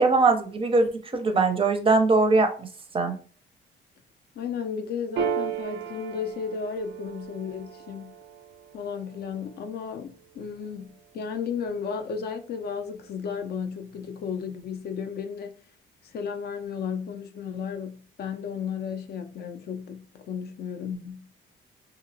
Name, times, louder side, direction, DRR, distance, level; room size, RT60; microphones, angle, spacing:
voice 1, 0.0-2.7 2.9-3.1, right 3 dB, 25° right, 0.4 m, -21 dB
voice 2, 4.4-8.1 8.7-15.5 16.0-21.3, left 6 dB, 55° left, 0.4 m, -34 dB
Piano, 5.2-12.1, right 7 dB, 90° right, 0.4 m, -36 dB
2.7 x 2.0 x 2.6 m
cardioid pair, 90°, 20 cm